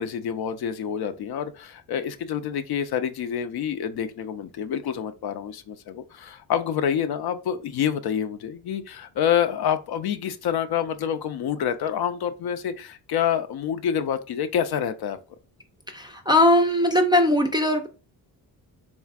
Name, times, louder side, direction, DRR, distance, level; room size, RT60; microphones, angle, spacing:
voice 1, 0.0-15.2, left 8 dB, 55° left, 0.5 m, -27 dB
voice 2, 15.9-17.9, left 1 dB, 10° right, 0.4 m, -19 dB
3.3 x 2.4 x 2.3 m
supercardioid pair, 50°, 45 cm